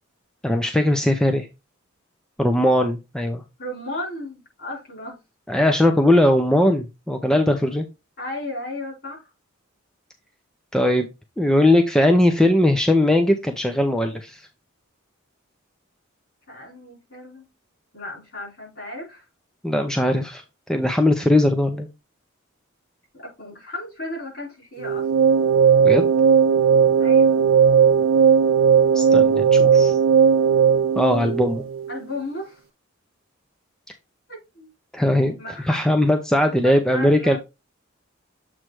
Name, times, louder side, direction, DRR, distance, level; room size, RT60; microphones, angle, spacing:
voice 1, 0.4-1.5 2.4-3.4 5.5-7.9 10.7-11.1 11.4-14.4 19.6-20.4 20.7-21.9 25.8-26.1 28.9-30.0 31.0-31.6 34.9-35.4 35.7-37.4, left 1 dB, 5° left, 0.6 m, -19 dB
voice 2, 3.6-5.2 8.2-9.3 16.5-17.5 17.9-19.2 23.1-25.1 27.0-27.4 31.9-32.6 34.3-34.7 35.4-35.8 36.6-37.4, left 1 dB, 50° left, 4.0 m, -34 dB
sound 1, 24.8-32.0, right 7 dB, 75° right, 0.5 m, -17 dB
7.5 x 3.2 x 4.7 m
head